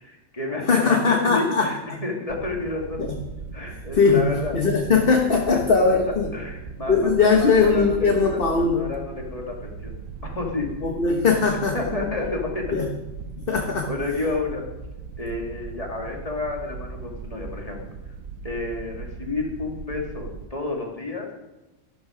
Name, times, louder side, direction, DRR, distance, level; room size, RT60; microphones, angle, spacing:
voice 1, 0.0-3.1 3.5-4.6 5.5-9.9 10.2-10.7 11.7-12.7 13.9-14.6 15.2-18.0 18.4-21.3, left 3 dB, 25° left, 0 dB, 2.4 m, -31 dB
voice 2, 0.7-1.7 3.0-3.2 3.9-4.2 4.5-6.3 6.9-8.9 10.8-11.8 12.7-12.9 13.5-13.9, left 4 dB, 45° left, 2 dB, 1.4 m, -20 dB
sound 1, 2.3-20.5, right 5 dB, 75° right, 1.2 m, -38 dB
12.5 x 12.5 x 5.0 m, 1.0 s
omnidirectional pair, 1.4 m